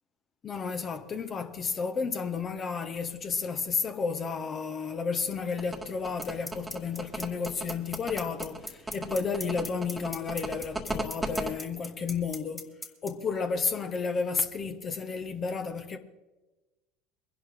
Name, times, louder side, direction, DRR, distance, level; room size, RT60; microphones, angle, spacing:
voice 1, 0.4-12.7 13.0-16.0, left 5 dB, 35° left, 1.4 m, -32 dB
sound 1, 5.6-11.5, right 2 dB, 10° right, 1.7 m, -35 dB
sound 2, 6.2-13.1, left 1 dB, 15° left, 2.1 m, -37 dB
22.5 x 11.0 x 3.8 m
hypercardioid pair, 80°, 0 cm